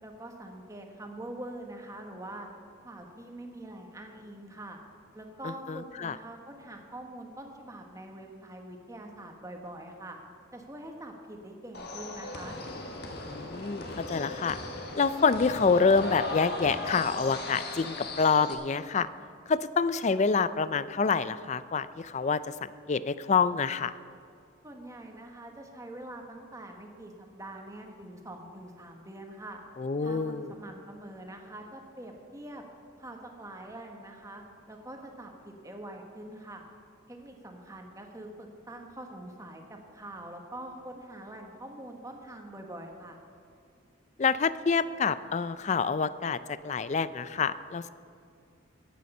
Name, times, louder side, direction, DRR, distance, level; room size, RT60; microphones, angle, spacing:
voice 1, 0.0-2.5 2.8-4.8 5.1-10.2 10.5-12.6 24.6-29.6 30.0-32.6 33.0-36.6 37.1-43.2, right 1 dB, 15° right, 2 dB, 1.3 m, -44 dB
voice 2, 5.7-6.2 13.2-14.6 15.0-19.1 19.5-23.9 29.8-30.5 44.2-47.9, left 5 dB, 35° left, 15 dB, 0.3 m, -27 dB
sound 1, 11.7-18.5, left 2 dB, 50° left, 1.5 m, -37 dB
15.0 x 9.3 x 5.5 m, 2.4 s
head